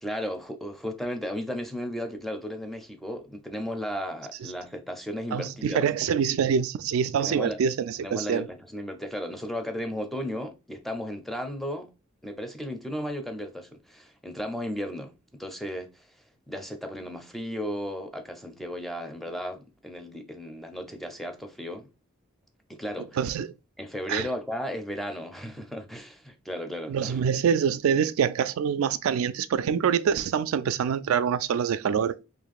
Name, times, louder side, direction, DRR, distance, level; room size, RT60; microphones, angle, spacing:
voice 1, 0.0-5.9 7.2-7.6 8.0-11.9 12.2-16.1 16.5-21.9 22.7-23.2 23.8-27.2, equal, ahead, 0.5 m, -35 dB
voice 2, 5.3-8.5 23.2-23.5 24.1-24.3 26.9-32.2, right 7 dB, 80° right, 0.3 m, -25 dB
3.0 x 2.5 x 4.0 m
head